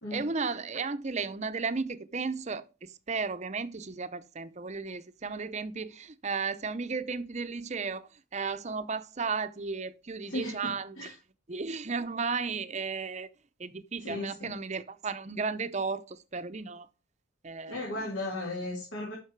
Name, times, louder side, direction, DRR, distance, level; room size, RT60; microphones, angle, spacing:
voice 1, 0.1-11.1 11.5-13.3 13.6-16.9 17.4-17.9, right 4 dB, 35° right, 0.6 m, -34 dB
voice 2, 10.3-10.7 11.0-11.2 14.0-14.5 17.7-19.2, left 1 dB, 75° left, 2.9 m, -35 dB
10.5 x 6.4 x 4.6 m
head